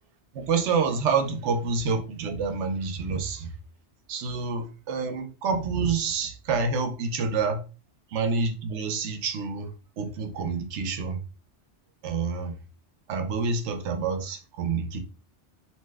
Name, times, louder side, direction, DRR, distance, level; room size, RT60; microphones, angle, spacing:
voice 1, 0.3-3.5 4.1-7.6 8.1-11.2 12.0-12.5 13.1-15.0, right 5 dB, 90° right, 0.9 m, -28 dB
2.9 x 2.1 x 3.3 m
omnidirectional pair, 1.2 m